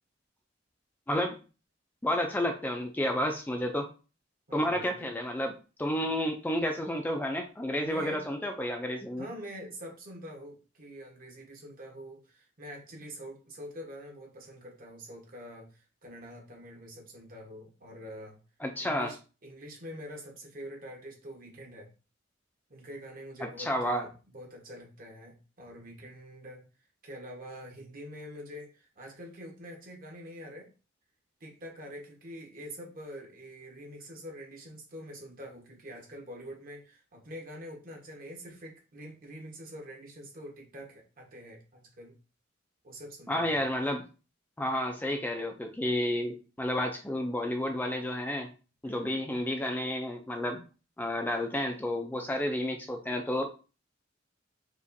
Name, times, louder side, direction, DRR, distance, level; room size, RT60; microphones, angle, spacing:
voice 1, 2.0-3.9 4.5-5.5 5.8-9.3 18.6-19.1 23.6-24.0 43.3-44.0 44.6-48.5 48.8-50.6 51.0-53.5, left 1 dB, 10° left, 3 dB, 0.4 m, -31 dB
voice 2, 4.5-5.1 7.8-8.2 9.2-18.4 18.8-21.9 22.7-26.6 27.0-30.7 31.4-42.1 42.8-43.7 48.8-49.1, equal, 45° right, 1 dB, 1.2 m, -45 dB
4.9 x 2.4 x 2.6 m, 0.34 s
head